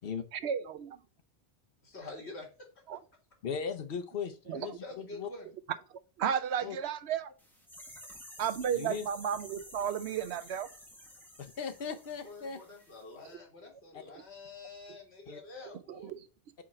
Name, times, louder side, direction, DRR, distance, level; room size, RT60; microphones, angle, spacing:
voice 1, 0.3-1.0 2.9-3.0 4.5-4.8 6.2-7.3 8.4-10.7 15.9-16.2, right 8 dB, 85° right, 0.9 m, -33 dB
voice 2, 1.8-2.5 4.8-5.5 12.2-16.1, left 3 dB, 80° left, 2.2 m, -47 dB
voice 3, 3.4-5.3 6.6-6.8 8.7-9.0 11.4-12.6 13.9-14.0 15.3-15.4, left 6 dB, 65° left, 1.0 m, -38 dB
sound 1, 7.4-13.0 13.3-13.4, equal, ahead, 1.2 m, -52 dB
4.8 x 4.3 x 4.7 m
omnidirectional pair, 1.1 m